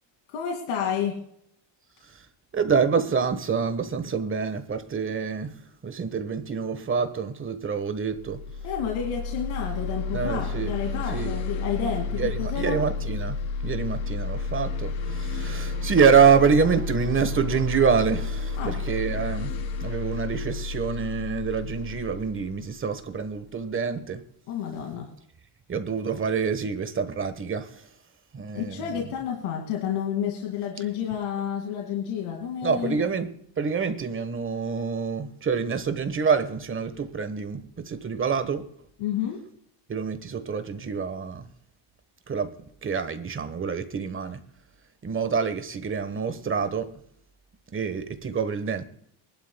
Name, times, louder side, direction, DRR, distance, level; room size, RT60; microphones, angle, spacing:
voice 1, 0.3-1.2 8.6-12.8 18.6-18.8 24.5-25.1 28.5-33.0 39.0-39.4, left 8 dB, 85° left, 2.5 m, -30 dB
voice 2, 2.5-8.4 10.1-10.7 11.1-11.3 12.1-24.2 25.7-27.9 28.3-29.1 32.6-38.7 39.9-41.5 42.3-42.6 42.8-44.4 45.0-47.0 47.7-48.8, right 6 dB, 25° right, 1.3 m, -26 dB
sound 1, 8.1-23.5, left 4 dB, 70° left, 3.3 m, -31 dB
sound 2, 14.7-19.4, right 7 dB, 70° right, 2.9 m, -44 dB
24.0 x 12.0 x 2.3 m
cardioid pair, 125°, 48 cm